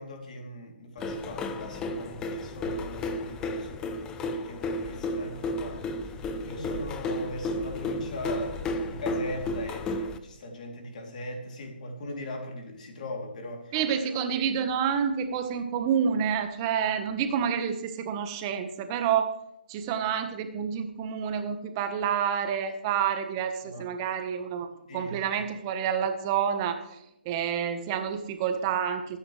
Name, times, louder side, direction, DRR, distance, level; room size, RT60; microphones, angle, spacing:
voice 1, 0.0-3.8 4.3-6.0 6.4-13.8 23.6-23.9 24.9-25.2, left 1 dB, 45° left, 2 dB, 3.2 m, -39 dB
sound 1, 1.0-10.2, left 1 dB, 10° left, 0.7 m, -33 dB
voice 2, 13.7-19.3 19.7-24.7 24.9-27.0 27.2-29.2, right 8 dB, 25° right, 7 dB, 1.3 m, -28 dB
27.0 x 9.8 x 3.3 m, 0.81 s
figure-of-eight pair, 155°, 6 cm